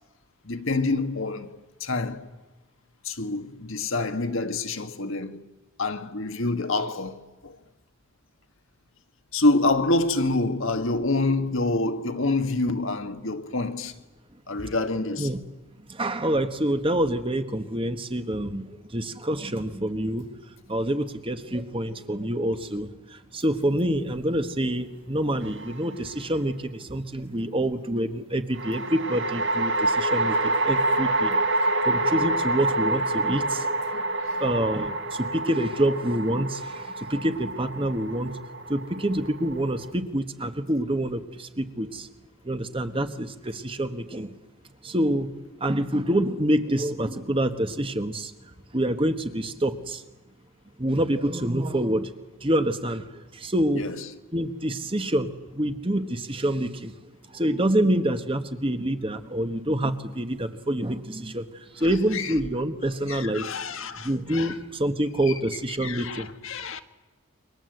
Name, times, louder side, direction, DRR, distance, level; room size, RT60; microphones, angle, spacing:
voice 1, 0.4-2.3 3.0-5.4 5.8-7.6 9.3-14.0 14.5-15.3 34.2-34.3 53.7-54.0 62.1-62.3 63.1-64.5 65.3-65.4 65.7-66.8, left 2 dB, 60° left, 1.7 m, -27 dB
voice 2, 15.9-20.2 20.7-33.7 34.4-38.3 38.7-42.1 42.4-44.3 44.8-45.3 45.6-48.3 48.7-50.0 50.8-52.1 52.4-53.8 54.3-56.9 57.3-61.5 61.7-63.5 64.0-66.3, right 1 dB, 25° right, 1.4 m, -27 dB
sound 1, 25.4-26.1 28.6-39.9, right 2 dB, 55° right, 1.7 m, -27 dB
29.0 x 24.0 x 8.0 m
head